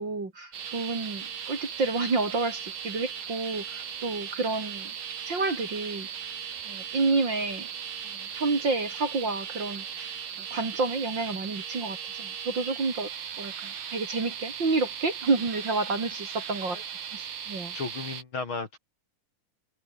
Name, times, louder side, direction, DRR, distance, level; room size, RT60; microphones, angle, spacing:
voice 1, 0.0-4.9 5.3-6.1 6.7-7.7 8.1-10.1 10.4-13.1 13.4-16.8 17.1-17.7, right 3 dB, 35° right, 3.5 m, -29 dB
sound 1, 0.5-18.2, right 8 dB, 75° right, 4.3 m, -38 dB
voice 2, 17.7-18.8, left 4 dB, 40° left, 3.0 m, -34 dB
omnidirectional pair, 3.8 m